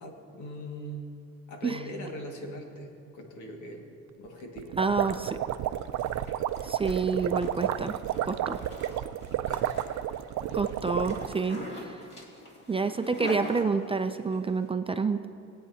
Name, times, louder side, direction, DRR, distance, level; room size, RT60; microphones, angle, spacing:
voice 1, 0.0-1.1 1.5-4.7 9.5-9.8 10.5-10.7, equal, 75° left, 1 dB, 2.0 m, -41 dB
sound 1, 4.6-11.4, right 12 dB, 70° right, 0.5 m, -31 dB
voice 2, 4.8-5.4 6.6-7.9 8.2-8.6 10.5-12.0 12.7-15.3, right 4 dB, 20° right, 8 dB, 0.5 m, -28 dB
Zipper (clothing), 5.7-14.4, left 1 dB, 35° left, 2.5 m, -43 dB
22.0 x 8.7 x 2.8 m, 2.4 s
cardioid pair, 90°, 30 cm